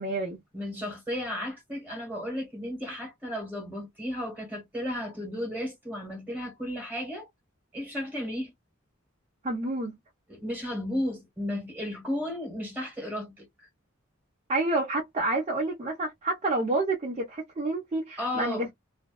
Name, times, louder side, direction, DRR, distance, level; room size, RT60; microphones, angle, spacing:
voice 1, 0.0-0.4 9.4-9.9 14.5-18.7, right 2 dB, 30° right, 0.7 m, -29 dB
voice 2, 0.5-7.3 7.7-8.5 10.3-13.7 18.2-18.7, left 1 dB, 10° right, 1.3 m, -34 dB
2.6 x 2.2 x 2.3 m
head